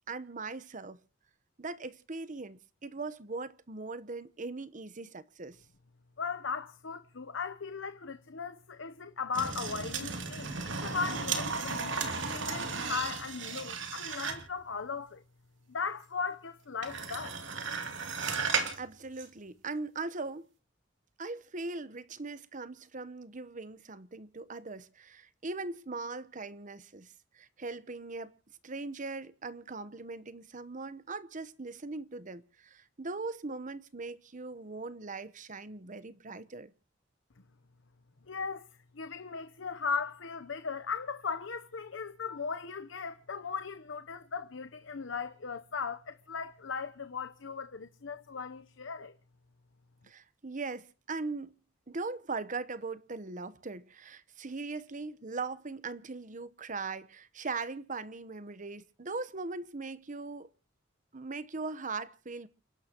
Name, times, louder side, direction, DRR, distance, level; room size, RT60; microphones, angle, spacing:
voice 1, 0.1-1.0 1.6-5.6 18.8-20.5 21.2-28.3 28.6-36.7 50.0-51.6 51.9-60.5 61.1-62.5, right 3 dB, 40° right, 1.0 m, -40 dB
voice 2, 6.2-10.6 10.8-11.9 12.3-15.2 15.7-17.4 38.3-38.7 38.9-49.1, left 5 dB, 80° left, 0.8 m, -37 dB
sound 1, 9.3-14.6 16.8-18.8 19.2-19.3, right 5 dB, 70° right, 3.0 m, -35 dB
29.5 x 11.5 x 3.0 m
head